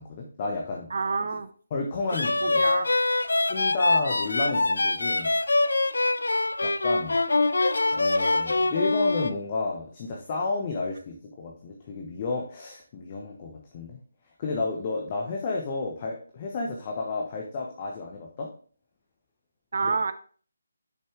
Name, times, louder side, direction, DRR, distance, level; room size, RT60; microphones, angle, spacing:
voice 1, 0.0-0.9 1.2-1.3 1.7-2.6 3.5-5.3 6.6-7.2 7.9-14.0 14.4-18.5 19.8-19.9, left 3 dB, 30° left, 0 dB, 0.9 m, -31 dB
voice 2, 0.9-1.5 2.4-2.9 19.7-20.1, right 4 dB, 50° right, 12 dB, 0.4 m, -28 dB
sound 1, 2.1-9.3, left 2 dB, 65° left, 0.4 m, -24 dB
6.7 x 5.5 x 3.5 m, 0.44 s
figure-of-eight pair, 150°, 0 cm